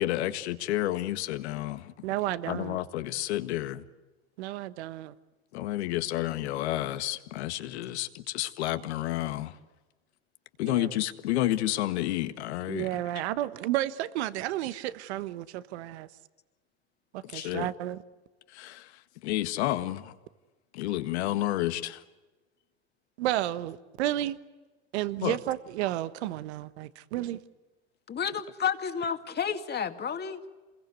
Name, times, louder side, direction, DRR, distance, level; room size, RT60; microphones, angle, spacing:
voice 1, 0.0-1.9 2.5-3.8 5.5-9.6 10.6-13.0 17.2-17.7 18.5-18.9 19.2-20.1 20.7-22.0 25.2-25.4, left 15 dB, 75° left, 9 dB, 1.7 m, -30 dB
voice 2, 2.0-2.8 4.4-5.1 10.6-10.9 12.7-16.1 17.1-18.0 23.2-24.4 24.9-27.4, right 14 dB, 75° right, 14 dB, 1.3 m, -32 dB
voice 3, 28.1-30.4, left 7 dB, 30° left, 6 dB, 2.2 m, -31 dB
28.0 x 21.5 x 8.2 m, 1.2 s
hypercardioid pair, 95°, 33 cm